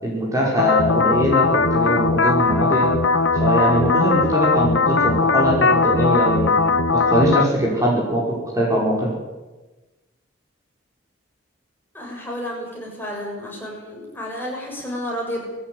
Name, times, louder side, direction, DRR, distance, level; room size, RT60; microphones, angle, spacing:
voice 1, 0.0-2.9 3.4-6.6 6.9-9.1, equal, 15° right, -3 dB, 5.7 m, -21 dB
sound 1, 0.6-7.4, left 3 dB, 90° left, 1.3 m, -19 dB
voice 2, 11.9-15.4, equal, 10° left, -2 dB, 6.6 m, -31 dB
21.0 x 17.5 x 9.6 m, 1.1 s
head